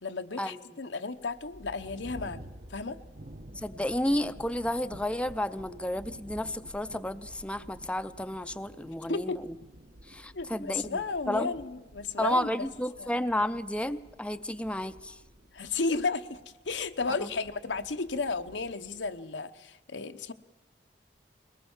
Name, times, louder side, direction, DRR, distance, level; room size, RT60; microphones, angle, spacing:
voice 1, 0.0-2.4 2.7-3.0 9.1-9.4 10.3-12.7 13.0-13.1 15.5-20.3, left 4 dB, 85° left, 8 dB, 1.0 m, -33 dB
sound 1, 1.2-19.2, right 1 dB, 50° right, 1.1 m, -51 dB
voice 2, 3.6-9.5 10.1-11.5 12.2-15.2, left 1 dB, 5° left, 10 dB, 0.6 m, -32 dB
22.0 x 19.0 x 7.2 m, 1.3 s
head